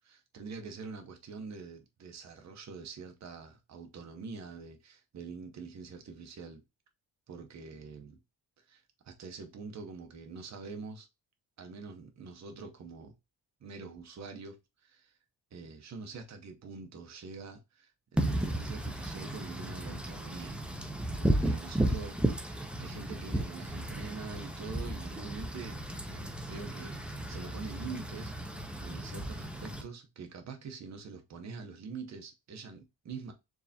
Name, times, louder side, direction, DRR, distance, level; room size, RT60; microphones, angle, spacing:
voice 1, 0.0-6.6 7.3-8.2 8.7-11.1 11.6-13.1 13.6-15.1 15.5-20.6 21.2-25.8 26.1-33.3, right 4 dB, 45° right, 0.8 m, -45 dB
Wind / Rain, 18.2-29.8, right 1 dB, 5° right, 0.5 m, -34 dB
4.6 x 3.3 x 2.7 m
wide cardioid pair, 145°, 39 cm